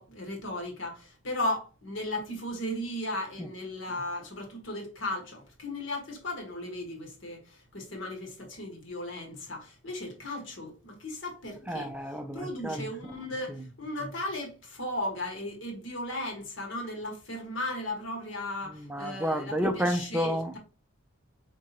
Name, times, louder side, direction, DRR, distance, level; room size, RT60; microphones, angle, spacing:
voice 1, 0.0-11.9 12.3-20.6, left 1 dB, 60° left, 1.5 m, -36 dB
voice 2, 11.7-12.8 13.5-13.6 18.7-20.5, equal, 5° right, 0.5 m, -31 dB
4.6 x 3.7 x 2.9 m
head